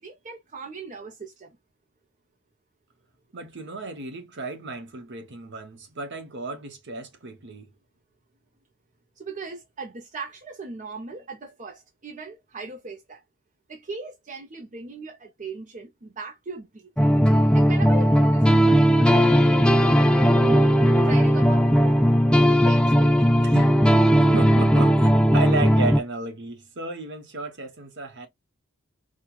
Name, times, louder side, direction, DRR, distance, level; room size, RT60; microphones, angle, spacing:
voice 1, 0.0-1.6 9.2-13.2 13.7-16.9 17.5-20.5 21.0-21.8 22.3-23.5, right 4 dB, 35° right, 0.7 m, -39 dB
voice 2, 3.3-7.7 20.4-20.7 23.5-23.8 24.1-28.3, right 3 dB, 55° right, 1.0 m, -33 dB
sound 1, 17.0-26.0, equal, 5° left, 0.4 m, -18 dB
4.6 x 2.3 x 2.3 m
head